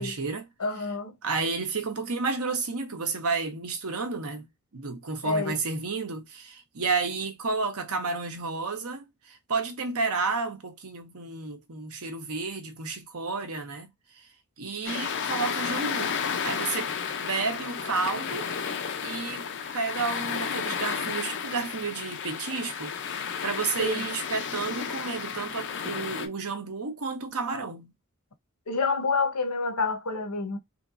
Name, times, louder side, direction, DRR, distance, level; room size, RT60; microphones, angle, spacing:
voice 1, 0.0-0.4 1.2-4.5 4.7-13.9 14.6-16.1 16.4-16.9 17.2-18.5 19.0-19.5 19.7-27.9, right 4 dB, 75° right, 0.9 m, -31 dB
voice 2, 0.6-1.1 5.2-5.5 23.8-24.1 28.7-30.6, left 4 dB, 85° left, 0.9 m, -28 dB
sound 1, 14.8-26.3, left 7 dB, 55° left, 0.5 m, -32 dB
3.2 x 2.9 x 2.5 m
head